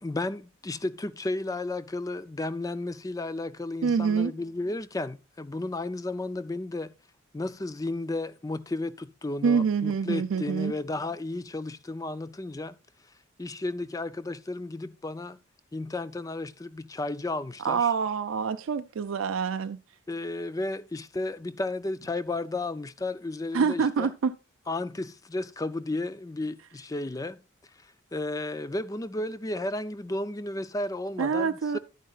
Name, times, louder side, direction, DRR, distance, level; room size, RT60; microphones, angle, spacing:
voice 1, 0.0-6.9 7.3-12.8 13.4-15.4 15.7-17.9 20.1-24.1 24.7-31.8, left 2 dB, 15° left, 0.4 m, -33 dB
voice 2, 3.8-4.3 9.4-10.7 17.6-19.8 23.5-24.3 31.2-31.8, right 6 dB, 75° right, 0.4 m, -26 dB
11.0 x 9.2 x 2.4 m
head